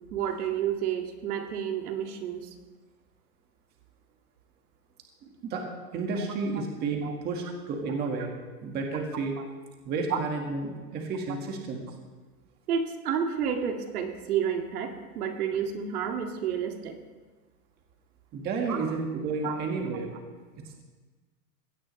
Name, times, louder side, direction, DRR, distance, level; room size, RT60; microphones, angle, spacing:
voice 1, 0.1-2.5 6.6-6.7 7.0-7.1 10.1-10.2 12.7-17.0 18.7-18.9 19.4-19.6, right 8 dB, 65° right, 3 dB, 2.2 m, -30 dB
voice 2, 5.2-5.7 5.9-8.3 8.6-9.4 9.8-11.9 18.3-20.1 20.6-20.8, right 4 dB, 20° right, 1 dB, 1.7 m, -31 dB
21.5 x 16.5 x 3.2 m, 1.4 s
supercardioid pair, 165°, 47 cm